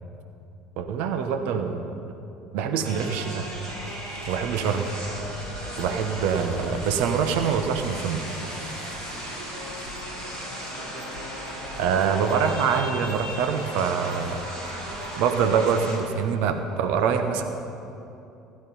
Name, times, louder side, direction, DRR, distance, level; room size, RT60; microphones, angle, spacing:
voice 1, 0.8-1.8 2.5-3.5 4.3-4.9 5.8-8.2 11.8-14.4 15.2-17.4, right 6 dB, 65° right, 7 dB, 1.0 m, -25 dB
sound 1, 2.8-16.0, equal, 90° right, 3.5 m, -35 dB
15.5 x 11.5 x 5.5 m, 2.8 s
figure-of-eight pair, 65°, 3 cm